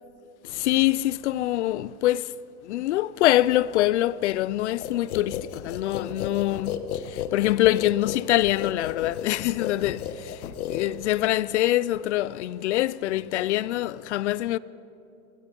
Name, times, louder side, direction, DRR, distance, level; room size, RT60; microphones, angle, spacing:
voice 1, 0.4-2.3 2.6-14.6, left 15 dB, 55° left, 0.5 m, -24 dB
sound 1, 4.8-11.3, left 9 dB, 75° left, 1.4 m, -34 dB
26.0 x 20.5 x 5.2 m
supercardioid pair, 155°, 44 cm